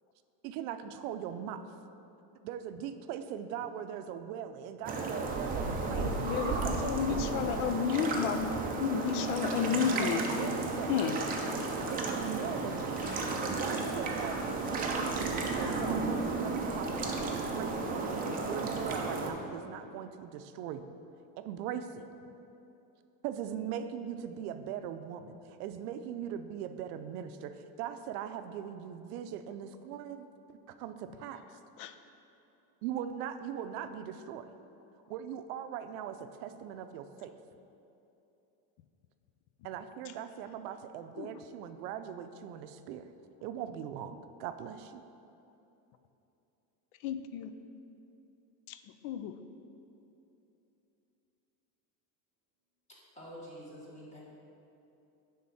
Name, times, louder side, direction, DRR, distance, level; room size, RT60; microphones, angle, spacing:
voice 1, 0.4-1.7 2.4-7.2 9.9-11.2 11.9-13.0 13.5-20.9 21.4-22.1 23.2-31.4 32.8-34.5 35.1-37.3 39.6-43.1 43.4-45.0, right 9 dB, 90° right, 9 dB, 0.6 m, -40 dB
sound 1, 4.8-19.3, right 3 dB, 20° right, 0.5 m, -33 dB
voice 2, 5.9-8.5 8.8-10.2 10.9-11.2 13.0-13.4 31.8-31.9 41.2-41.3 47.0-47.5 48.7-49.4, left 8 dB, 65° left, 10 dB, 0.6 m, -32 dB
sound 2, 9.0-15.5, left 2 dB, 45° left, 1.2 m, -53 dB
voice 3, 53.1-54.2, equal, 15° left, -5 dB, 1.4 m, -47 dB
9.5 x 3.7 x 5.6 m, 2.9 s
cardioid pair, 165°, 44 cm